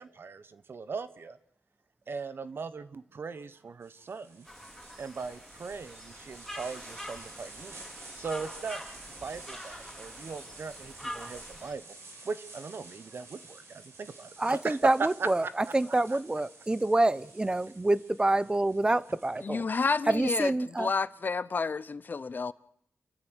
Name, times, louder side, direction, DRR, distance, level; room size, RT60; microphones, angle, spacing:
voice 1, 0.0-1.4 2.1-4.5 5.0-7.9 8.2-8.8 9.2-11.8 12.2-14.8 15.4-15.5, right 4 dB, 55° right, 1.1 m, -39 dB
sound 1, 3.8-19.4, right 3 dB, 85° right, 6.0 m, -50 dB
sound 2, 4.5-11.7, equal, ahead, 4.0 m, -45 dB
voice 2, 14.4-19.6 20.1-20.9, right 2 dB, 20° right, 0.8 m, -27 dB
voice 3, 19.4-20.5 20.8-22.5, left 4 dB, 45° left, 0.8 m, -30 dB
28.5 x 13.5 x 8.1 m
wide cardioid pair, 90°, 4 cm